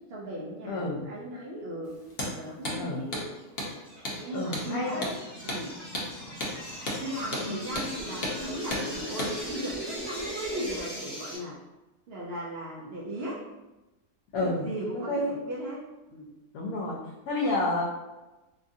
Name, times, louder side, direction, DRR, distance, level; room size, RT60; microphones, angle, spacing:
voice 1, 0.1-2.0 2.3-3.3 4.0-5.1 5.4-5.7 7.0-11.6 12.1-13.4 14.4-15.8 16.1-16.3, right 1 dB, 75° right, -5 dB, 0.5 m, -37 dB
voice 2, 0.6-1.1 2.7-3.1 4.3-5.0 7.5-7.6 14.3-14.7 15.1-15.3 16.5-17.0 17.3-17.8, left 2 dB, 75° left, -4 dB, 1.0 m, -29 dB
Hammer, 2.1-2.3 2.6-2.8 3.1-3.3 3.6-3.7 4.0-4.2 4.5-4.7 5.0-5.2 5.5-5.6 5.9-6.1 6.4-6.5 6.9-7.0 7.3-7.5 7.8-7.9 8.2-8.4 8.7-8.9 9.2-9.3, left 1 dB, 55° left, 0.7 m, -32 dB
sound 1, 3.4-11.4, equal, 20° right, 0.9 m, -39 dB
3.0 x 2.4 x 2.6 m, 1.1 s
omnidirectional pair, 1.6 m